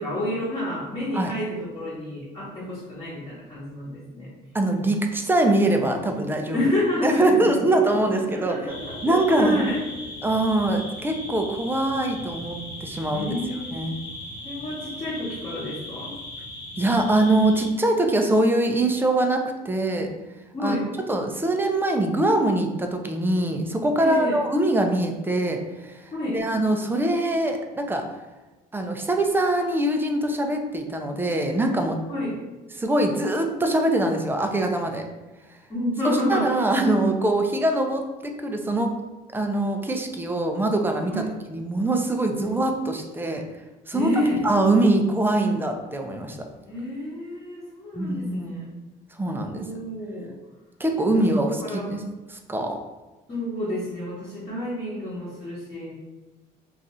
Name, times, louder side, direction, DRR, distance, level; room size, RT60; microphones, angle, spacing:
voice 1, 0.0-4.3 6.5-7.5 7.9-9.8 13.1-13.8 14.4-16.1 20.5-20.9 24.0-24.4 26.1-26.4 32.1-32.4 35.7-36.6 41.1-41.3 42.4-42.5 43.9-44.4 46.6-48.7 49.5-50.4 51.1-51.9 53.3-55.9, left 1 dB, 30° left, -9 dB, 1.1 m, -29 dB
voice 2, 4.5-6.6 7.0-8.6 9.0-9.6 10.2-13.3 13.7-14.0 16.8-20.1 20.6-20.8 21.1-26.0 26.3-28.0 28.7-32.0 32.8-35.0 36.3-38.9 39.3-41.2 41.5-43.4 43.9-44.1 44.4-46.4 47.9-48.5 49.2-49.6 50.8-52.0 52.3-52.8, right 1 dB, 10° right, 4 dB, 0.4 m, -23 dB
sound 1, 8.7-17.7, left 1 dB, 85° left, 1.0 m, -38 dB
2.5 x 2.4 x 4.1 m, 1.1 s
cardioid pair, 110°, 17 cm